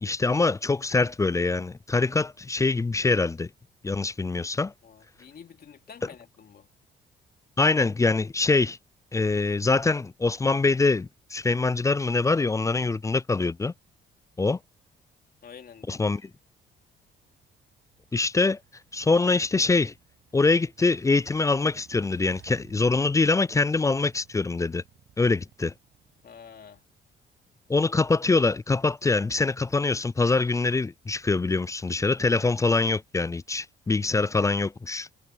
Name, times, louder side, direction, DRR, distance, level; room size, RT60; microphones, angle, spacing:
voice 1, 0.0-3.5 3.8-4.7 7.6-8.8 9.1-13.7 14.4-14.6 15.9-16.3 18.1-18.6 18.9-19.9 20.3-24.8 25.2-25.7 27.7-35.1, left 3 dB, 15° left, 0.4 m, -24 dB
voice 2, 4.8-6.7 15.4-16.2 26.2-26.8, left 7 dB, 50° left, 2.8 m, -48 dB
Motorcycle / Engine, 17.1-26.8, right 11 dB, 75° right, 7.7 m, -59 dB
cardioid pair, 90°, 20 cm